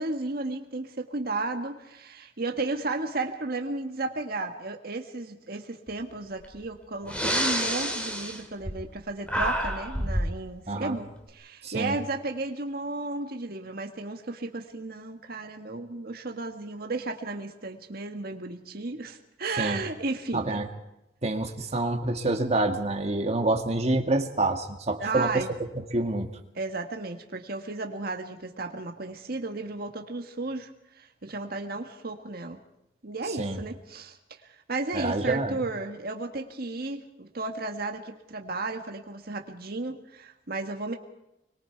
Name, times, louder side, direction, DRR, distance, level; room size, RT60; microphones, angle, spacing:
voice 1, 0.0-20.6 25.0-25.5 26.6-30.7 31.0-32.6 33.0-34.2 34.7-40.9, right 3 dB, 60° right, 4 dB, 1.7 m, -34 dB
Breathing, 6.4-6.6 7.0-9.0 9.3-10.4, equal, 5° left, 2.9 m, -28 dB
voice 2, 11.6-11.9 19.6-19.8 20.3-20.7 21.2-25.4 25.9-26.3 33.4-33.6 34.9-35.5, right 2 dB, 40° right, 4 dB, 1.9 m, -27 dB
26.0 x 22.5 x 4.6 m, 0.89 s
head